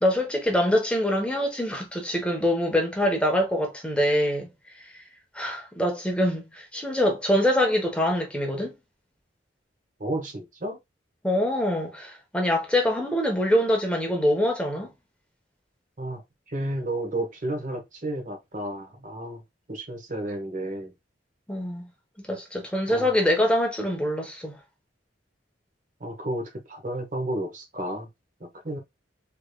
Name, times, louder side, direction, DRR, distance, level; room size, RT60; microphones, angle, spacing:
voice 1, 0.0-4.5 5.3-8.7 11.2-14.9 21.5-21.9 22.2-24.6, left 1 dB, 5° left, 1.0 m, -24 dB
voice 2, 10.0-10.8 16.0-16.2 16.5-19.4 19.7-20.9 22.9-23.1 26.0-28.1 28.4-28.8, right 1 dB, 45° right, 1.1 m, -32 dB
3.7 x 3.3 x 2.2 m
head